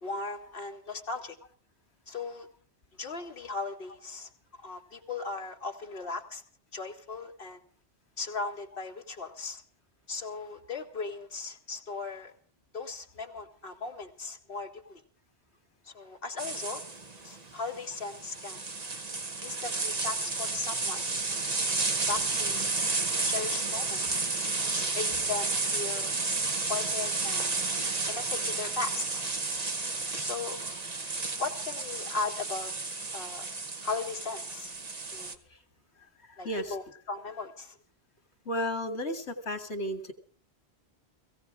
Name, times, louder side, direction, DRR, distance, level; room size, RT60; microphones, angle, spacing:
voice 1, 0.0-1.4 2.1-2.5 3.0-4.3 4.6-6.4 6.7-7.6 8.2-9.6 10.1-12.3 12.7-15.0 15.8-16.8 17.2-18.6 19.4-21.0 21.6-22.7 23.3-24.0 24.7-26.1 26.5-27.5 28.0-29.2 30.2-30.7 31.4-32.7 33.1-33.5 33.8-34.7 35.1-35.4 36.4-37.8, left 4 dB, 60° left, 1 dB, 2.2 m, -37 dB
sound 1, 16.4-35.3, right 3 dB, 40° right, 1.2 m, -32 dB
voice 2, 38.5-40.1, equal, 85° left, 8 dB, 2.2 m, -33 dB
17.0 x 16.5 x 4.9 m, 0.43 s
omnidirectional pair, 1.1 m